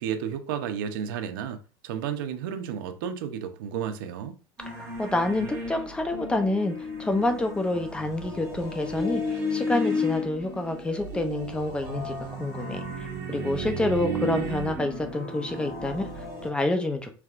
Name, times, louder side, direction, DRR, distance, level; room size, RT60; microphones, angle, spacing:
voice 1, 0.0-1.6 1.8-4.4, right 8 dB, 85° right, 0.7 m, -32 dB
sound 1, 4.6-16.5, left 1 dB, 25° right, 2.1 m, -33 dB
voice 2, 4.7-17.1, left 2 dB, 10° left, 0.6 m, -28 dB
4.7 x 3.3 x 2.5 m
supercardioid pair, 145°, 11 cm